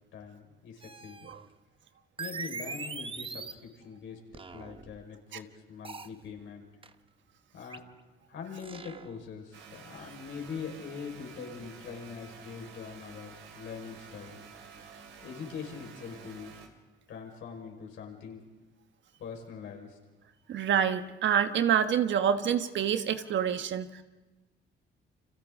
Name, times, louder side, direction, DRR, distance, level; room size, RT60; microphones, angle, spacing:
voice 1, 0.1-1.2 2.2-3.4 3.8-4.2 4.5-6.6 7.5-7.8 8.3-14.4 15.2-16.6 17.1-18.5 19.2-19.9, left 6 dB, 75° left, 1 dB, 5.0 m, -42 dB
sound 1, 0.8-1.5 2.2-3.7 4.3-5.0 5.8-6.2 6.8-6.9 7.7-7.8 8.6-9.2 10.0-10.1, right 4 dB, 25° right, 0.9 m, -41 dB
sound 2, 9.5-16.7, right 6 dB, 85° right, 3.4 m, -50 dB
voice 2, 20.5-24.0, right 8 dB, 70° right, 9 dB, 1.3 m, -27 dB
30.0 x 26.0 x 3.8 m, 1.2 s
cardioid pair, 90°, 20 cm